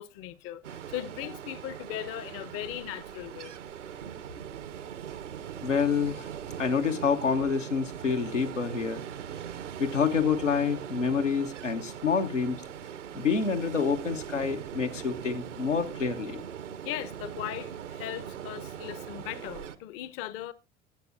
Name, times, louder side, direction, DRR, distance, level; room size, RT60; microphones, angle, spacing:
voice 1, 0.0-3.5 16.8-20.5, left 13 dB, 40° left, 0.7 m, -38 dB
Ocean, 0.6-19.8, right 9 dB, 75° right, 0.8 m, -40 dB
voice 2, 5.6-6.3 6.6-9.0 9.8-12.6 13.1-16.4, left 5 dB, 85° left, 1.0 m, -27 dB
19.5 x 8.3 x 2.5 m
figure-of-eight pair, 80°, 36 cm